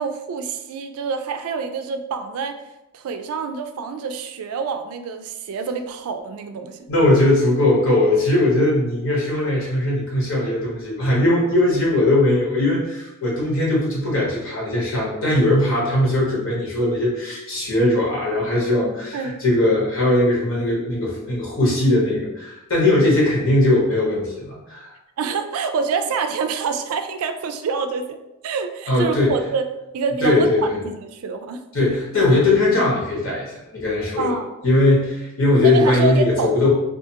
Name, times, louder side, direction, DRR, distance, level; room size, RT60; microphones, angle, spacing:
voice 1, 0.0-2.5 2.9-6.8 19.1-19.4 25.2-28.2 28.4-29.6 29.9-31.6 34.2-34.5 35.5-36.5, right 5 dB, 80° right, 7 dB, 0.3 m, -26 dB
voice 2, 6.9-24.9 28.9-29.3 30.2-30.8 31.7-33.5 33.7-34.3 34.6-36.7, left 1 dB, 65° left, -5 dB, 1.0 m, -19 dB
2.4 x 2.4 x 2.7 m, 0.92 s
head